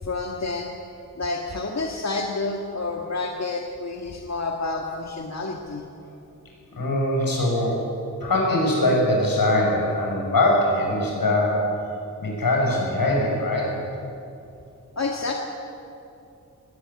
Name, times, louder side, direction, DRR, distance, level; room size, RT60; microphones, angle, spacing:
voice 1, 0.0-0.7 1.1-5.8 14.9-15.3, left 3 dB, 50° left, 1 dB, 1.8 m, -29 dB
voice 2, 6.7-7.8 8.2-11.7 12.2-13.8, left 1 dB, 85° left, -2 dB, 6.9 m, -22 dB
20.0 x 17.5 x 8.8 m, 2.6 s
wide cardioid pair, 85°, 34 cm